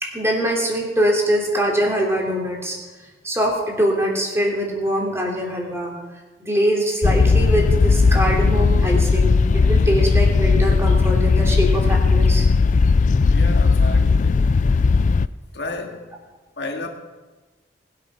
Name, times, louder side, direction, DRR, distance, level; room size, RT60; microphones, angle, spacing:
voice 1, 0.0-2.8 3.2-5.9 6.4-12.5, equal, 15° right, 3.0 m, -23 dB
sound 1, 7.0-15.3, left 4 dB, 45° left, 0.4 m, -17 dB
voice 2, 13.2-14.5 15.5-16.1 16.6-16.9, left 2 dB, 70° left, 2.0 m, -32 dB
20.0 x 8.5 x 5.9 m
head